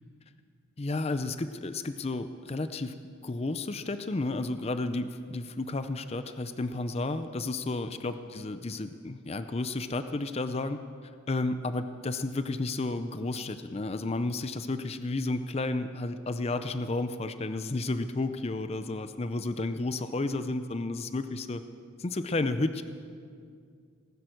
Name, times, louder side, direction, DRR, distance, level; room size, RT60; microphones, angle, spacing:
voice 1, 0.8-2.9 3.2-10.8 11.3-21.6 22.0-22.8, left 2 dB, 30° left, 10 dB, 0.5 m, -32 dB
19.0 x 10.5 x 6.5 m, 2.2 s
head